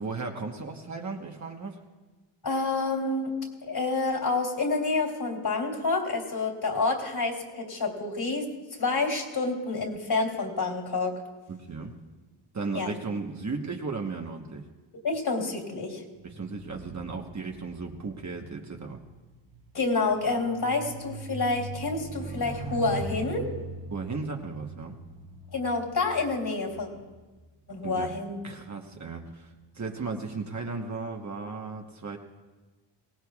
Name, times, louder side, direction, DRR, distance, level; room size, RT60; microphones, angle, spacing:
voice 1, 0.0-1.8 11.5-11.9 12.5-14.7 16.2-19.0 23.9-25.0 27.8-28.1 28.4-29.5 29.7-32.2, right 4 dB, 35° right, 2 dB, 1.2 m, -35 dB
voice 2, 2.4-3.4 3.6-8.5 8.8-11.1 12.7-12.9 15.0-16.0 19.7-23.5 25.5-26.9 27.7-28.4, left 3 dB, 50° left, 2 dB, 3.2 m, -28 dB
sound 1, 16.2-27.8 28.5-28.8, right 2 dB, 75° right, 3.8 m, -42 dB
23.0 x 18.5 x 2.4 m, 1.3 s
wide cardioid pair, 120°, 50 cm